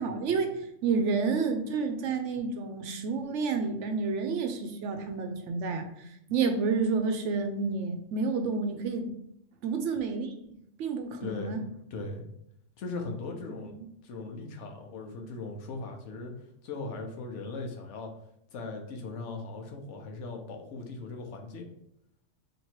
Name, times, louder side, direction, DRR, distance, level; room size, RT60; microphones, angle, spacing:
voice 1, 0.0-9.1 9.6-11.6 13.8-13.9, right 4 dB, 75° right, 6 dB, 0.9 m, -30 dB
voice 2, 11.2-11.6 11.9-12.2 12.8-13.8 14.0-16.3 16.6-18.1 18.5-21.7, left 3 dB, 70° left, 2 dB, 1.0 m, -39 dB
3.0 x 2.8 x 4.4 m, 0.76 s
omnidirectional pair, 1.3 m